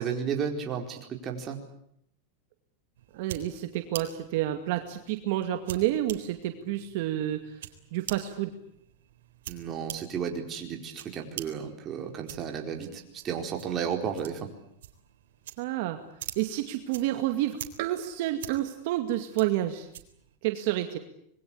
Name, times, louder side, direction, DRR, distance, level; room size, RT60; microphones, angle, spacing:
voice 1, 0.0-1.6 9.5-14.5, right 7 dB, 25° right, 3 dB, 4.5 m, -33 dB
sound 1, 2.9-20.4, right 11 dB, 80° right, 3.7 m, -46 dB
voice 2, 3.1-7.4 7.9-8.5 15.6-16.0 16.4-19.9 20.4-21.0, right 13 dB, 60° right, 6 dB, 2.3 m, -29 dB
26.5 x 22.0 x 8.6 m, 0.71 s
supercardioid pair, 150°, 0 cm